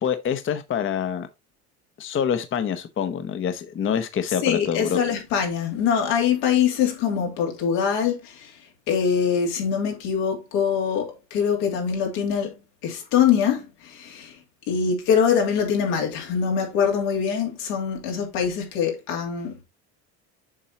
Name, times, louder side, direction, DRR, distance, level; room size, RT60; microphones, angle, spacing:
voice 1, 0.0-1.3 2.0-5.0, left 8 dB, 30° left, 0.8 m, -26 dB
voice 2, 4.4-8.6 8.9-12.5 12.8-14.4 14.7-19.6, left 7 dB, 90° left, 2.7 m, -23 dB
7.3 x 5.4 x 2.8 m
cardioid pair, 115°, 39 cm